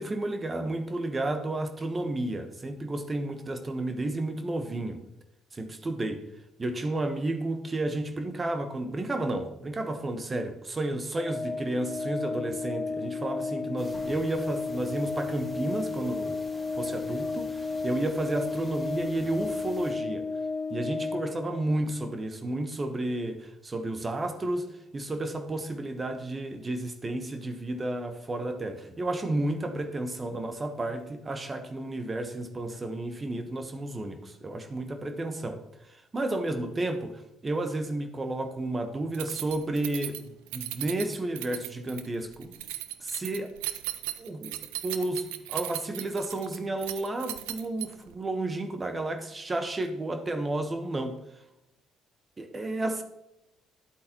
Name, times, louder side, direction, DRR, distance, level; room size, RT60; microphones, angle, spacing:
voice 1, 0.0-5.0 5.5-6.2 6.6-16.4 16.7-20.3 20.7-42.5 43.0-43.5 44.2-44.6 44.8-51.2 52.4-53.0, right 2 dB, 30° right, 7 dB, 1.1 m, -32 dB
Organ, 11.1-21.8, left 4 dB, 35° left, 2.4 m, -33 dB
sound 1, 13.8-19.9, equal, 10° right, 2.6 m, -49 dB
Keys jangling, 39.1-48.2, right 15 dB, 85° right, 0.4 m, -37 dB
10.5 x 8.4 x 3.0 m, 0.87 s
hypercardioid pair, 55°, 0 cm